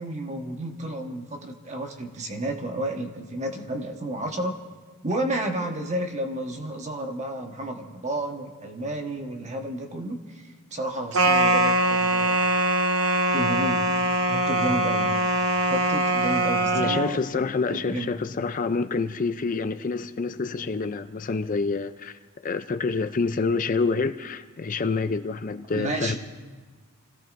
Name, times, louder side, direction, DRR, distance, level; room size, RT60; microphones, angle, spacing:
voice 1, 0.0-4.6 5.0-12.4 13.3-13.9 14.3-15.1 15.7-17.4 17.7-18.1 25.7-26.2, right 1 dB, 35° right, 3 dB, 1.4 m, -31 dB
sound 1, 11.1-17.1, right 1 dB, 85° right, 0.9 m, -22 dB
voice 2, 16.7-22.1 22.4-26.2, left 4 dB, 40° left, 10 dB, 0.5 m, -27 dB
30.0 x 17.0 x 2.6 m, 1.4 s
head